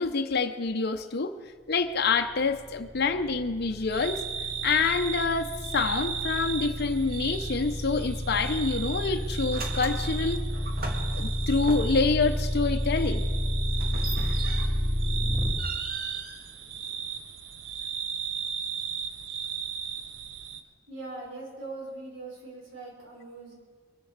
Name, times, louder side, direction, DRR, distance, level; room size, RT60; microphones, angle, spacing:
voice 1, 0.0-1.4 1.7-4.3 4.6-10.4 11.1-13.2, left 4 dB, 55° left, 0.7 m, -27 dB
sound 1, 2.2-15.5, equal, 5° left, 2.6 m, -30 dB
sound 2, 3.9-20.6, right 7 dB, 70° right, 0.8 m, -36 dB
sound 3, 8.4-8.7 9.0-12.2 13.7-15.0 15.3-17.2, right 2 dB, 50° right, 1.8 m, -41 dB
voice 2, 20.9-23.5, right 2 dB, 90° right, 5.0 m, -41 dB
23.0 x 8.0 x 6.5 m
head